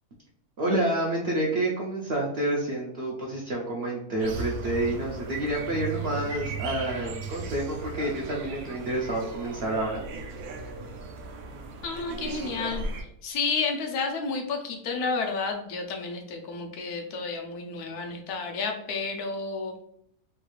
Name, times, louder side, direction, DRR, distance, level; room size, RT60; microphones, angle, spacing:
voice 1, 0.6-10.0 10.3-10.4, right 1 dB, 60° right, -2 dB, 0.6 m, -29 dB
sound 1, 4.2-13.0, right 4 dB, 75° right, 1.0 m, -36 dB
voice 2, 11.8-12.8 13.2-19.8, left 4 dB, 90° left, 2 dB, 1.2 m, -31 dB
3.3 x 2.3 x 3.1 m, 0.71 s
omnidirectional pair, 1.6 m